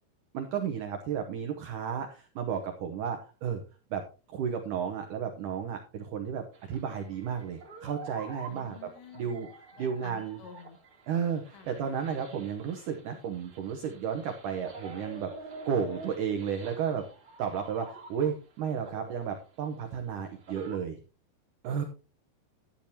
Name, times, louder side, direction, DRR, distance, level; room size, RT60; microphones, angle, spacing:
voice 1, 0.3-3.6 3.9-4.1 4.3-9.5 9.8-10.4 11.1-17.1 17.4-21.0 21.6-21.8, right 7 dB, 85° right, 5 dB, 1.8 m, -33 dB
sound 1, 6.5-18.5 18.8-20.8, right 3 dB, 40° right, 2.4 m, -48 dB
voice 2, 8.5-9.4 9.8-10.8 11.5-11.7, left 7 dB, 80° left, 8 dB, 3.2 m, -50 dB
12.5 x 10.0 x 2.8 m, 0.34 s
omnidirectional pair, 5.2 m